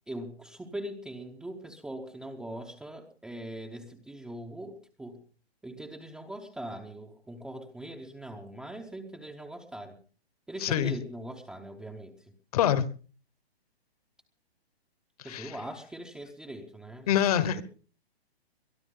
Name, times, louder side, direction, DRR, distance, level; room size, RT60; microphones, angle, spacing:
voice 1, 0.1-5.2 5.6-10.0 10.5-12.3 15.2-17.1 17.5-17.6, right 1 dB, ahead, 3 dB, 0.8 m, -41 dB
voice 2, 10.6-10.9 12.5-12.9 15.2-15.5 17.1-17.6, left 10 dB, 35° left, 16 dB, 1.2 m, -25 dB
22.5 x 12.5 x 3.8 m, 0.38 s
hypercardioid pair, 155°, 32 cm